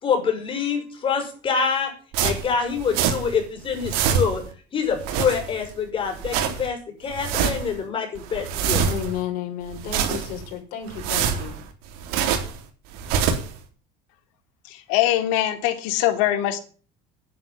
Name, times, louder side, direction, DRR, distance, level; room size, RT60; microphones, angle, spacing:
voice 1, 0.0-1.9 2.2-4.4 4.7-8.8, left 6 dB, 35° left, 4 dB, 6.3 m, -26 dB
sound 1, 2.1-3.4 3.7-4.5 4.9-5.7 6.1-6.7 7.1-7.8 8.2-9.2 9.7-10.5 10.9-12.6 12.9-13.6, right 7 dB, 75° right, 3.8 m, -25 dB
voice 2, 8.8-11.6, left 9 dB, 65° left, 4 dB, 5.2 m, -32 dB
voice 3, 14.7-16.6, left 13 dB, 85° left, 8 dB, 2.9 m, -22 dB
11.0 x 10.5 x 7.3 m, 0.40 s
cardioid pair, 135°, 16 cm